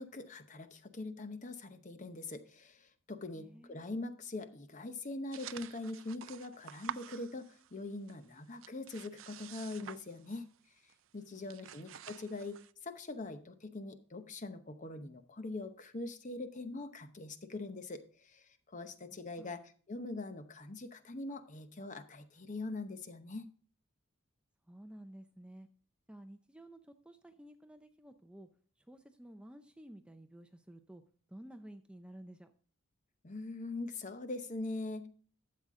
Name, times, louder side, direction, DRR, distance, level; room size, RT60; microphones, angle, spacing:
voice 1, 0.0-10.5 11.1-19.6 19.9-23.5 33.2-35.1, left 2 dB, 35° left, 9 dB, 0.9 m, -43 dB
voice 2, 3.4-3.9 11.4-11.5 11.8-11.9 19.4-19.6 24.7-25.7 26.1-28.5 28.8-31.0 31.3-32.5, right 1 dB, 5° right, 8 dB, 0.5 m, -53 dB
sound 1, 5.3-7.8 8.1-10.6 10.9-11.1 11.4-12.7, right 9 dB, 65° right, 0.4 m, -49 dB
12.5 x 7.6 x 3.7 m, 0.43 s
head